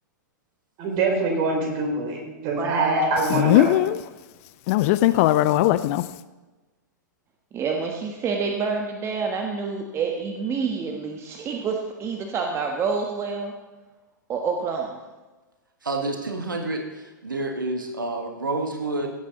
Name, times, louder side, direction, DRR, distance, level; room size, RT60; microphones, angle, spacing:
voice 1, 0.8-2.2 2.4-3.7, right 2 dB, 45° right, 4.6 m, -24 dB
voice 2, 2.3-3.1 7.5-13.5 14.3-15.0, right 5 dB, 25° right, 1.3 m, -28 dB
voice 3, 3.3-4.0 4.7-6.1, left 15 dB, 45° left, 0.5 m, -19 dB
voice 4, 15.8-19.1, right 2 dB, 85° right, 1.6 m, -29 dB
17.0 x 8.6 x 4.0 m
figure-of-eight pair, 105°, 10 cm